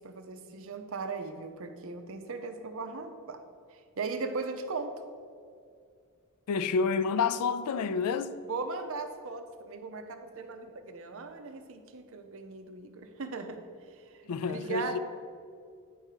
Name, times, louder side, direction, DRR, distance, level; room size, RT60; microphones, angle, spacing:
voice 1, 0.0-3.4 3.7-5.0 8.5-13.6 14.1-15.0, right 4 dB, 65° right, 0.6 m, -38 dB
voice 2, 6.5-8.3 14.3-15.0, left 5 dB, 90° left, 0.4 m, -29 dB
9.3 x 3.5 x 5.6 m
head